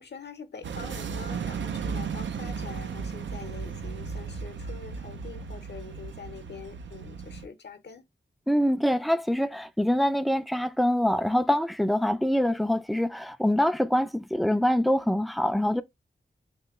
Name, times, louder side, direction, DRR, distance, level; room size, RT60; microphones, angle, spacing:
voice 1, 0.0-8.0, left 6 dB, 65° left, 0.7 m, -44 dB
sound 1, 0.6-7.5, right 6 dB, 90° right, 0.4 m, -35 dB
voice 2, 8.5-15.8, equal, ahead, 0.3 m, -24 dB
3.0 x 2.9 x 3.4 m
wide cardioid pair, 55°, 19 cm